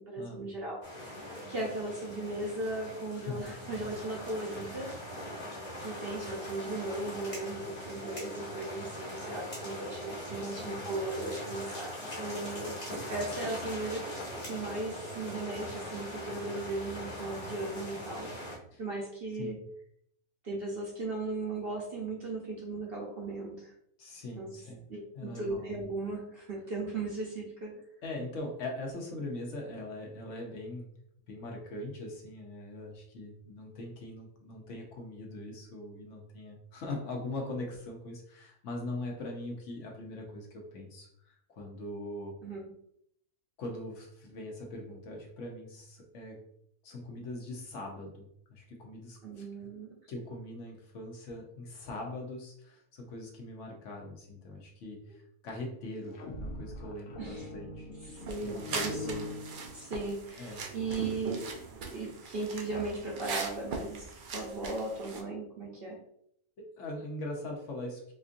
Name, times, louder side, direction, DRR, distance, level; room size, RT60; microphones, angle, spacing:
voice 1, 0.0-4.9 5.3-5.4 5.8-12.8 13.1-14.1 14.4-18.3 18.8-19.6 20.4-23.7 24.4-24.5 24.9-27.8 42.4-42.7 49.2-49.9 55.0-55.2 57.2-57.5 58.0-59.3 59.7-61.5 61.9-66.0, right 2 dB, 55° right, -2 dB, 0.7 m, -37 dB
sound 1, 0.8-18.6, equal, 30° left, 1.2 m, -41 dB
voice 2, 10.4-10.8 18.7-18.8 19.4-19.6 24.0-24.8 25.1-25.7 27.7-30.9 31.3-42.3 43.6-46.4 46.8-49.5 50.1-57.9 58.4-59.1 60.4-61.2 66.6-68.1, left 2 dB, 65° left, 1 dB, 1.0 m, -41 dB
sound 2, 55.9-60.2, left 2 dB, 80° left, 1.1 m, -42 dB
sound 3, 58.2-65.2, right 4 dB, 90° right, 0.4 m, -40 dB
4.3 x 2.6 x 2.5 m, 0.70 s
omnidirectional pair, 1.5 m